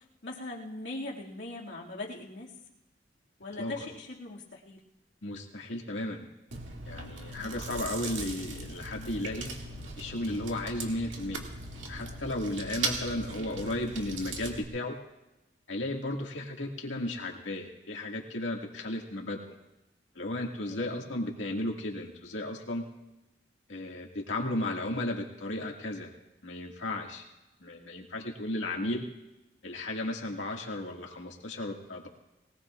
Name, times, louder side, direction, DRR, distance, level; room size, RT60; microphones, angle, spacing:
voice 1, 0.2-2.6 3.4-4.8 7.3-7.6 20.7-21.0, left 2 dB, 75° left, -3 dB, 2.3 m, -41 dB
voice 2, 5.2-6.3 6.8-9.5 10.0-11.4 11.9-15.0 15.7-19.6 20.2-22.8 23.7-26.1 26.4-27.2 27.6-29.0 29.6-32.1, left 1 dB, 90° left, 0 dB, 2.1 m, -34 dB
Chewing mastication, 6.5-14.6, right 3 dB, 85° right, 2.1 m, -39 dB
21.0 x 19.0 x 2.5 m, 0.96 s
head